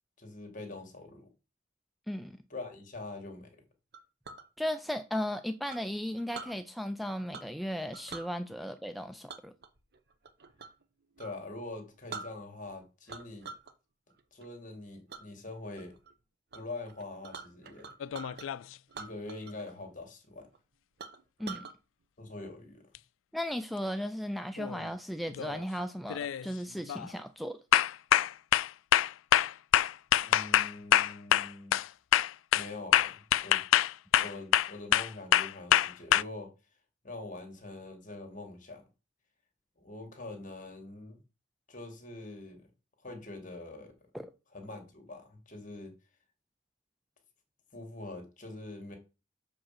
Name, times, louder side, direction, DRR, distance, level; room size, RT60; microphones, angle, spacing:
voice 1, 0.2-1.3 2.5-3.5 11.2-13.5 14.3-15.9 16.5-17.9 19.0-20.5 22.2-22.8 30.3-31.8 32.5-33.6 34.1-36.5 37.0-38.8 39.8-41.2 41.7-42.7 43.0-43.9 44.5-45.9 47.7-49.0, left 2 dB, 45° left, 2.2 m, -44 dB
voice 2, 2.1-2.4 4.6-9.5 21.4-21.7 23.3-27.6 44.1-44.3, equal, ahead, 0.4 m, -36 dB
Chink clink, 3.9-4.5 5.7-6.6 7.3-7.6 7.9-8.3 9.3-10.8 11.2-11.4 11.8-11.9 12.1-12.7 13.1-13.7 14.1-14.5 15.1-15.2 15.8-16.1 16.5-16.6 16.9-18.5 18.9-19.7 20.0-20.1 20.5-20.6 21.0-21.7, right 5 dB, 55° right, 0.9 m, -45 dB
sound 1, 18.0-18.7 23.0-23.1 24.6-24.9 25.3-25.6 26.1-26.5 26.9-27.1 27.7-36.2, left 11 dB, 90° left, 0.3 m, -25 dB
6.7 x 5.2 x 5.8 m
head